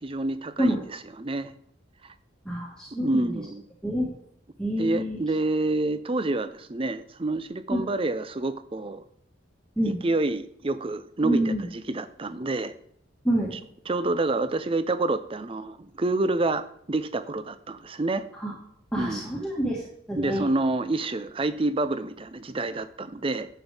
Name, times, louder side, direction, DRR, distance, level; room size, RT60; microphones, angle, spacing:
voice 1, 0.0-1.5 2.9-3.6 4.8-9.0 9.8-12.7 13.5-13.6 13.9-18.2 19.0-19.3 20.1-23.5, right 2 dB, 25° right, 12 dB, 0.5 m, -28 dB
voice 2, 2.4-3.2 3.8-4.1 4.6-5.2 7.7-7.8 9.8-10.0 11.2-11.7 13.2-13.5 18.3-18.5 18.9-19.8 20.1-20.4, right 1 dB, 5° left, -5 dB, 1.7 m, -27 dB
11.0 x 8.0 x 3.4 m, 0.69 s
head